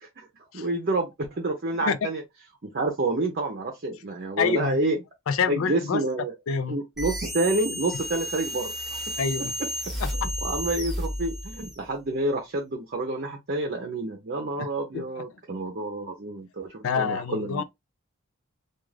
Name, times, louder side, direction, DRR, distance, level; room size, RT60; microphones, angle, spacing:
voice 1, 0.5-2.2 2.6-5.0 5.5-6.3 6.7-9.1 9.6-17.6, right 2 dB, 45° right, 0.6 m, -29 dB
voice 2, 4.4-4.8 5.3-6.0 6.5-6.8 9.2-9.5 10.0-10.3 14.6-14.7 14.9-15.0 16.8-17.6, left 6 dB, 75° left, 0.4 m, -27 dB
sound 1, 7.0-11.8, equal, ahead, 0.9 m, -32 dB
2.4 x 2.3 x 3.2 m
head